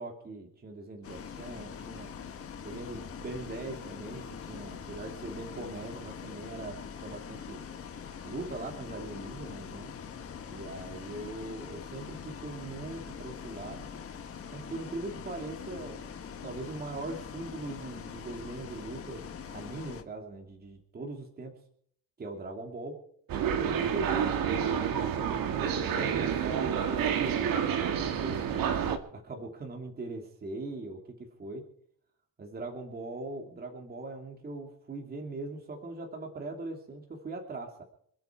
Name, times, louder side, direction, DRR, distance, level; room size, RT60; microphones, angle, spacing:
voice 1, 0.0-2.1 2.6-7.6 8.2-9.9 10.5-13.9 14.5-16.0 16.4-21.6 22.2-23.0 23.6-28.6 29.1-31.7 32.4-37.8, right 2 dB, 25° right, 2 dB, 2.8 m, -41 dB
Bus, 1.0-20.0, left 7 dB, 35° left, 1.7 m, -43 dB
sound 1, 23.3-29.0, right 8 dB, 60° right, 2.2 m, -29 dB
27.0 x 9.4 x 4.6 m, 0.66 s
cardioid pair, 165°, 39 cm